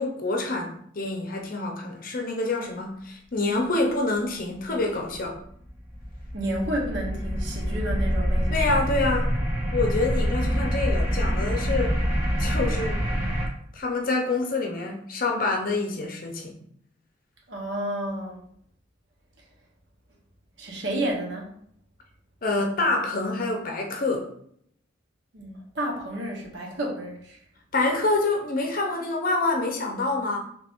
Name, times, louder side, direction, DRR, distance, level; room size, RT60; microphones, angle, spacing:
voice 1, 0.0-5.4 8.5-9.4 9.7-12.0 12.4-13.1 13.7-16.6 22.4-24.3 27.7-30.4, left 2 dB, 45° left, 1 dB, 0.6 m, -27 dB
sound 1, 5.1-13.5, equal, 15° right, 0.9 m, -26 dB
voice 2, 6.3-8.8 17.5-18.4 20.6-21.5 25.3-27.4, right 1 dB, 70° right, -1 dB, 1.0 m, -31 dB
3.3 x 2.5 x 3.4 m, 0.66 s
head